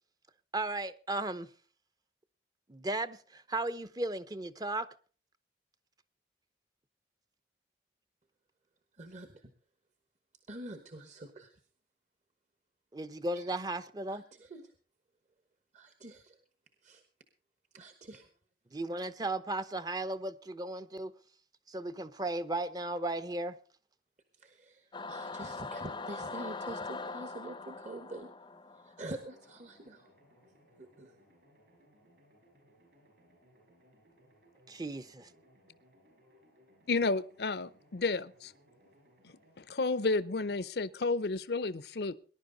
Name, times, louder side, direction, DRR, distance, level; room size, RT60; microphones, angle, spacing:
voice 1, 0.5-1.5 2.7-4.9 12.9-14.2 18.7-21.1 21.7-23.6 34.7-35.3, right 2 dB, 20° right, 0.7 m, -35 dB
voice 2, 8.9-9.5 10.5-11.6 13.3-13.5 14.1-14.7 15.7-16.4 16.8-17.0 17.7-18.3 24.3-28.3 28.7-30.1 30.8-31.2, right 1 dB, 40° right, 1.2 m, -46 dB
Singing / Musical instrument, 24.9-29.6, left 3 dB, 25° left, 0.6 m, -42 dB
sound 1, 29.2-39.6, equal, 65° right, 7.7 m, -65 dB
voice 3, 36.9-38.5 39.6-42.1, left 3 dB, 65° left, 0.6 m, -31 dB
19.5 x 11.0 x 3.9 m
head